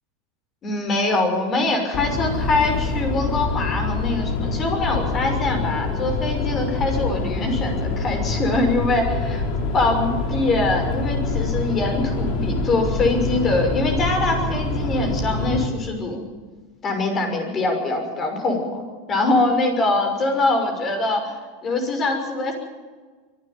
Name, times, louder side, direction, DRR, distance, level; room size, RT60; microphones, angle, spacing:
voice 1, 0.6-9.4 9.7-16.2 16.8-18.8 19.1-22.5, left 2 dB, 30° left, 5 dB, 6.1 m, -23 dB
sound 1, 1.9-15.7, left 3 dB, 50° left, 3.6 m, -25 dB
24.0 x 12.5 x 9.2 m, 1.4 s
hypercardioid pair, 90°, 0 cm